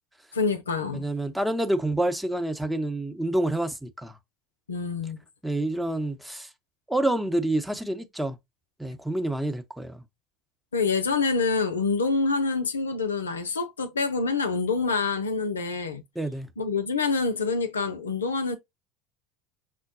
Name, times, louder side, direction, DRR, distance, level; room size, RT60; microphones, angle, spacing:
voice 1, 0.3-1.1 4.7-5.2 10.7-16.0 16.6-18.6, left 4 dB, 85° left, 0.5 m, -26 dB
voice 2, 0.9-4.2 5.4-6.5 6.9-8.4 8.8-10.0 16.2-16.5, right 1 dB, 5° right, 0.8 m, -28 dB
5.8 x 2.2 x 2.6 m
figure-of-eight pair, 70°, 0 cm